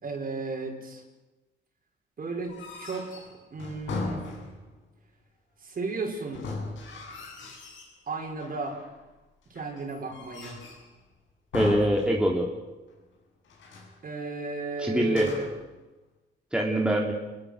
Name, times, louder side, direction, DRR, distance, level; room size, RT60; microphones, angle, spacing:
voice 1, 0.0-1.0 2.2-4.3 5.6-6.5 8.1-8.8 9.5-10.6 14.0-15.5, right 3 dB, 45° right, 1 dB, 5.7 m, -34 dB
sound 1, 2.4-4.8 6.3-8.0 8.4-9.0 9.5-10.9 11.5-12.6 12.9-13.0 13.4-14.0 15.0-15.7, left 3 dB, 75° left, 7.5 m, -38 dB
voice 2, 11.5-12.5 14.8-15.3 16.5-17.1, right 1 dB, 5° right, -1 dB, 3.3 m, -24 dB
27.5 x 21.5 x 6.8 m, 1.1 s
cardioid pair, 90°, 20 cm